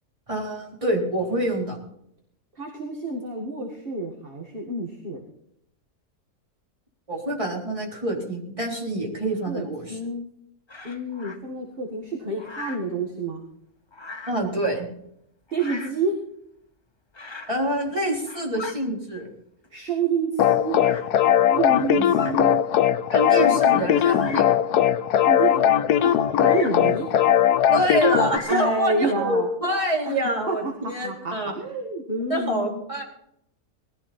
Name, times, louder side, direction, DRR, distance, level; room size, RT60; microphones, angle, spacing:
voice 1, 0.3-1.8 7.1-10.0 14.3-14.9 17.5-19.3 21.9-22.3 23.1-24.6 27.7-31.6 32.3-33.0, right 1 dB, 20° right, -2 dB, 3.9 m, -26 dB
voice 2, 2.6-5.2 9.5-10.3 10.8-13.4 15.5-16.1 19.7-20.8 21.5-22.6 23.3-24.5 25.2-27.1 28.5-29.5 30.1-32.8, right 3 dB, 35° right, 1 dB, 2.0 m, -29 dB
Bird vocalization bird call bird song, 10.7-11.4 12.4-12.9 13.9-14.5 15.5-16.0 17.1-17.6 18.1-18.8 19.6-19.7 20.8-21.1 22.0-22.4 23.0-23.1 23.9-24.6 26.3-26.9 27.9-28.8, left 3 dB, 20° left, 0.9 m, -38 dB
sound 1, 20.4-28.4, left 10 dB, 80° left, 1.3 m, -19 dB
19.5 x 13.5 x 4.3 m, 0.74 s
omnidirectional pair, 1.7 m